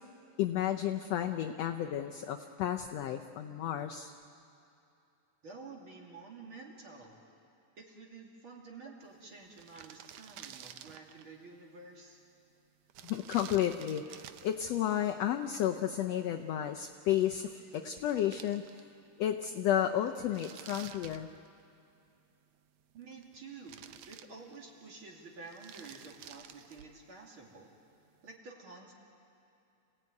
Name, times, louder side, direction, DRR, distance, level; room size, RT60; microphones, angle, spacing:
voice 1, 0.4-4.1 13.0-14.2 14.4-18.6 19.2-21.3, left 11 dB, 85° left, 6 dB, 1.4 m, -32 dB
voice 2, 5.4-7.2 7.8-12.2 22.9-27.7 28.2-28.9, right 3 dB, 40° right, -1 dB, 3.0 m, -50 dB
sound 1, 9.2-9.3 9.4-11.3 12.9-14.7 17.4-17.5 17.7-19.1 19.4-19.5 20.1-21.8 22.8-23.4 23.7-24.8 25.3-27.0, right 10 dB, 75° right, 1.6 m, -51 dB
27.5 x 17.0 x 9.5 m, 2.7 s
omnidirectional pair, 3.8 m